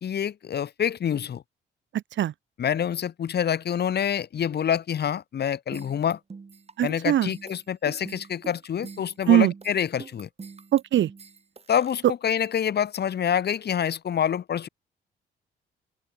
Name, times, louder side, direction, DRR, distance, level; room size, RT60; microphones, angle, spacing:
voice 1, 0.0-1.4 2.6-6.2 6.8-10.3 11.7-14.7, left 8 dB, 55° left, 2.5 m, -26 dB
voice 2, 1.9-2.3 6.8-7.3 9.3-9.5 10.7-11.1 12.0-12.1, right 12 dB, 70° right, 1.4 m, -21 dB
sound 1, 5.7-11.9, right 4 dB, 30° right, 4.3 m, -43 dB
cardioid pair, 90°, 20 cm